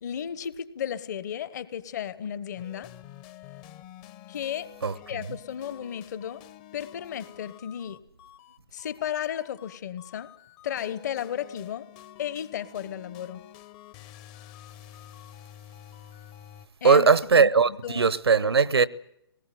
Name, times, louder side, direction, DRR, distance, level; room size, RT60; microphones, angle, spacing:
voice 1, 0.0-2.9 4.3-4.7 5.1-6.4 6.7-8.0 8.7-10.3 10.6-11.9 12.2-13.4 16.8-18.1, left 9 dB, 45° left, 1.2 m, -34 dB
sound 1, 2.6-16.7, left 12 dB, 25° left, 0.8 m, -49 dB
voice 2, 16.8-18.9, right 5 dB, 80° right, 0.9 m, -19 dB
21.5 x 19.0 x 9.4 m
figure-of-eight pair, 135°, 13 cm